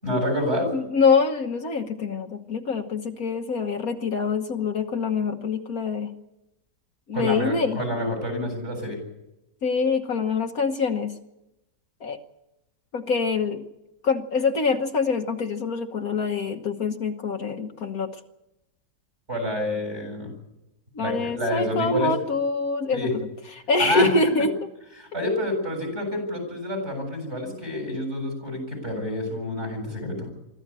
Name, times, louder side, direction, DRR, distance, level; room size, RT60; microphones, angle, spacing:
voice 1, 0.0-0.7 7.1-9.0 19.3-20.3 21.0-22.1 22.9-23.1 23.8-24.1 25.0-30.3, left 1 dB, 40° right, 5 dB, 8.2 m, -28 dB
voice 2, 0.7-6.1 7.1-7.8 9.6-11.1 12.0-12.2 12.9-13.6 14.0-18.2 20.9-23.3 23.7-24.5, left 4 dB, 60° left, 5 dB, 1.6 m, -25 dB
24.5 x 14.0 x 8.9 m, 0.93 s
omnidirectional pair, 1.8 m